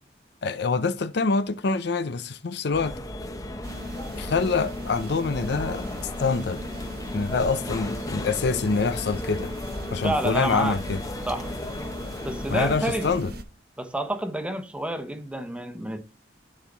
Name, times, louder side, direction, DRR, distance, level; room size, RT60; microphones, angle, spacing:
voice 1, 0.4-2.9 4.1-5.8 6.2-6.6 7.1-9.5 9.9-11.0 12.5-13.3, left 4 dB, 65° left, 0.6 m, -25 dB
sound 1, 2.7-13.1, left 1 dB, 20° left, 0.8 m, -35 dB
sound 2, 3.6-13.4, equal, 60° right, 1.2 m, -39 dB
voice 2, 10.0-10.8 11.3-11.6 12.3-13.1 13.8-16.0, right 1 dB, 5° right, 1.0 m, -29 dB
10.5 x 4.6 x 4.0 m
head